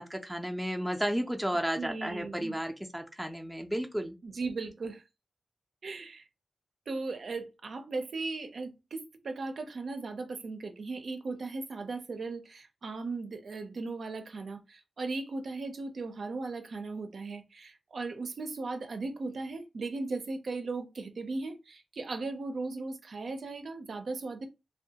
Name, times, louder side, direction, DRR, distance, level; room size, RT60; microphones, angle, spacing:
voice 1, 0.0-4.1, equal, ahead, 0.4 m, -33 dB
voice 2, 1.8-2.6 4.2-5.0 5.8-6.2 6.9-24.5, right 3 dB, 70° right, 0.4 m, -37 dB
2.2 x 2.1 x 2.7 m
wide cardioid pair, 85°, 0 cm